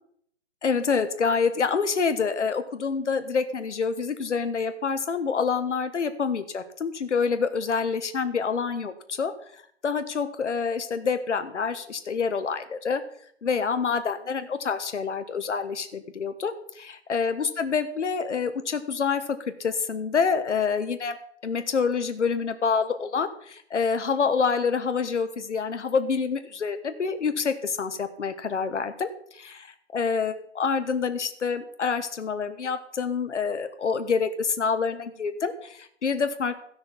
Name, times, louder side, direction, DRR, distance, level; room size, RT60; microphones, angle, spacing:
voice 1, 0.6-9.3 9.8-13.0 13.4-19.2 19.6-21.1 21.4-29.7 29.9-36.6, left 5 dB, 70° left, 9 dB, 1.3 m, -27 dB
15.5 x 6.2 x 4.4 m, 0.66 s
hypercardioid pair, 170°, 37 cm